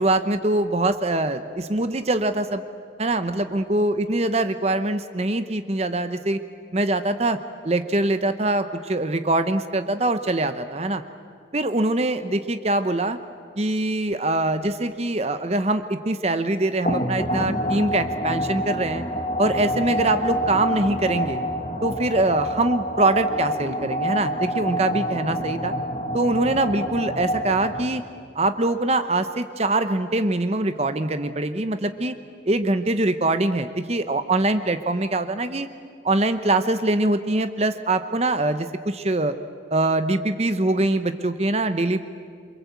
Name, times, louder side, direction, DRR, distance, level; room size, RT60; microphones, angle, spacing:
voice 1, 0.0-2.6 3.0-6.4 6.7-7.4 7.6-11.0 11.5-13.2 13.6-19.0 19.4-21.4 21.8-25.7 26.1-28.0 28.3-32.2 32.5-35.7 36.0-39.3 39.7-42.0, right 2 dB, 35° right, 10 dB, 0.8 m, -23 dB
sound 1, 16.8-28.2, equal, 35° left, 1.5 m, -27 dB
27.0 x 24.0 x 8.3 m, 2.1 s
head